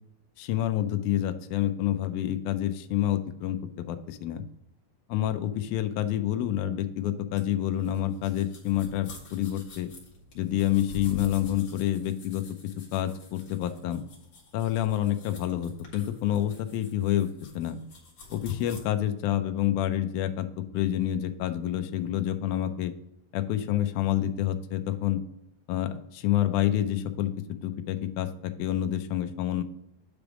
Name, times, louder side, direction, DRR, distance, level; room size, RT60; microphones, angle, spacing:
voice 1, 0.4-4.4 5.1-9.9 10.4-12.4 12.9-14.0 14.5-17.8 18.3-20.5 20.7-22.9 23.3-25.2 25.7-27.3 27.6-29.6, left 12 dB, 90° left, 8 dB, 1.7 m, -28 dB
sound 1, 7.3-18.8, left 3 dB, 45° left, 1.9 m, -48 dB
9.0 x 3.5 x 4.8 m, 0.79 s
omnidirectional pair, 4.2 m